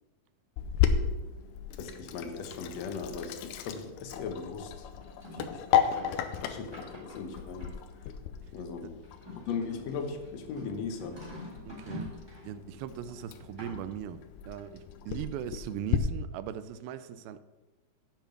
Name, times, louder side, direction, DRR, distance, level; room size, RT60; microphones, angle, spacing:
Sink (filling or washing), 0.6-16.0, left 8 dB, 90° left, 2.7 m, -34 dB
voice 1, 1.8-4.9 5.5-5.6 6.4-7.7 8.5-9.0 9.5-11.2, left 5 dB, 70° left, 5 dB, 1.6 m, -38 dB
sound 1, 5.0-8.0 9.0-12.5 13.1-14.0, left 1 dB, 5° right, 2.6 m, -46 dB
voice 2, 11.7-12.2 12.4-17.4, right 9 dB, 85° right, 14 dB, 2.3 m, -39 dB
8.0 x 6.9 x 7.2 m, 1.2 s
omnidirectional pair, 4.3 m